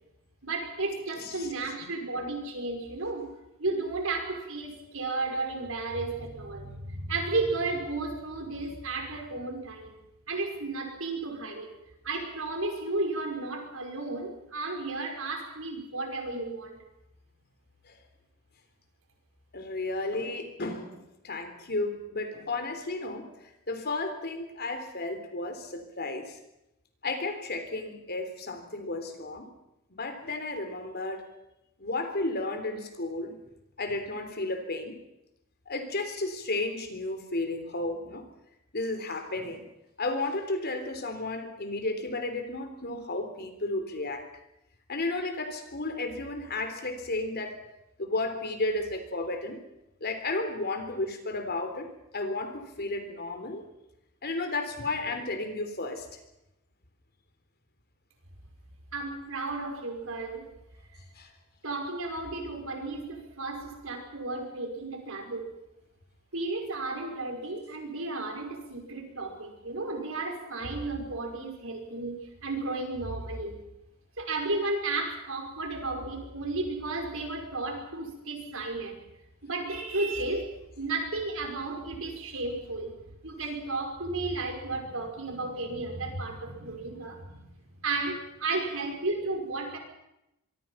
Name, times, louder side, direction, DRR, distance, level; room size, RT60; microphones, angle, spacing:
voice 1, 0.4-3.3 3.6-10.0 10.3-11.7 12.0-16.8 58.9-60.5 61.6-65.5 66.3-73.6 74.2-79.0 79.4-80.5 80.8-83.0 83.2-87.4 87.8-89.8, right 3 dB, 70° right, 3 dB, 5.9 m, -33 dB
voice 2, 1.2-1.5 1.8-2.2 17.8-18.0 19.5-21.0 21.2-26.4 27.0-29.5 29.9-31.3 31.8-33.4 33.8-35.0 35.7-38.3 38.7-39.7 40.0-44.3 44.9-47.6 48.0-49.6 50.0-53.7 54.2-56.2 61.2-61.3, left 2 dB, 50° left, 7 dB, 3.7 m, -33 dB
24.5 x 24.0 x 5.8 m, 0.87 s
head